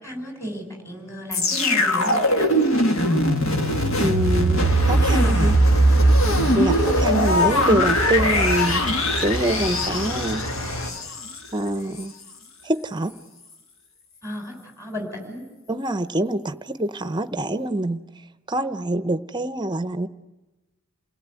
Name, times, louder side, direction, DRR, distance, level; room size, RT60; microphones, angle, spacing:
voice 1, 0.0-3.2 6.2-6.4 14.2-15.4, equal, 15° left, 3 dB, 5.2 m, -34 dB
sound 1, 1.3-11.4 12.0-12.1, equal, 70° left, 1.7 m, -20 dB
voice 2, 4.0-5.6 6.5-8.8 9.2-10.4 11.5-12.1 12.6-13.1 15.7-18.0 18.5-20.1, right 1 dB, 20° right, 12 dB, 0.8 m, -25 dB
sound 2, 4.6-10.9, equal, 85° left, 3.2 m, -30 dB
28.5 x 17.5 x 8.3 m, 1.1 s
head